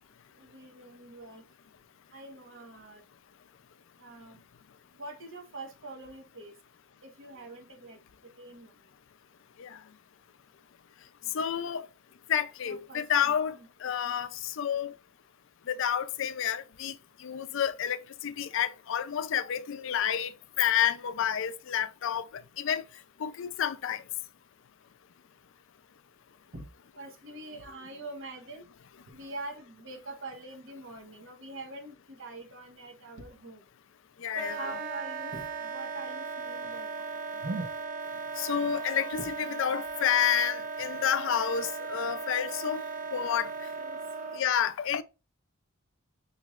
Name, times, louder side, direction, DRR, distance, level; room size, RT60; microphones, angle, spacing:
voice 1, 0.4-1.4 2.1-3.0 4.0-4.4 5.0-6.5 7.0-8.7 11.2-11.3 12.6-13.4 26.5-26.7 27.0-28.7 29.1-33.6 34.5-36.9 37.1-37.7 39.2-39.3 43.8-44.0, right 2 dB, 60° right, 1.1 m, -43 dB
voice 2, 11.3-11.9 12.3-14.9 15.7-20.3 20.6-22.8 23.2-24.0 34.2-34.7 38.4-42.8 43.1-43.7 44.3-45.0, left 9 dB, 60° left, 0.4 m, -30 dB
Wind instrument woodwind instrument, 34.3-44.4, right 4 dB, 40° right, 0.6 m, -37 dB
5.5 x 3.1 x 2.4 m
head